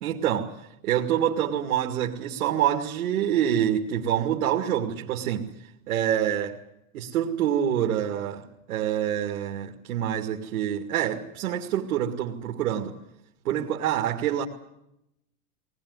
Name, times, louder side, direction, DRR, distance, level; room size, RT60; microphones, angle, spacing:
voice 1, 0.0-5.5 5.9-6.6 6.9-13.0 13.4-14.4, right 10 dB, 75° right, 2.4 m, -26 dB
20.5 x 19.5 x 9.7 m
supercardioid pair, 180°, 43 cm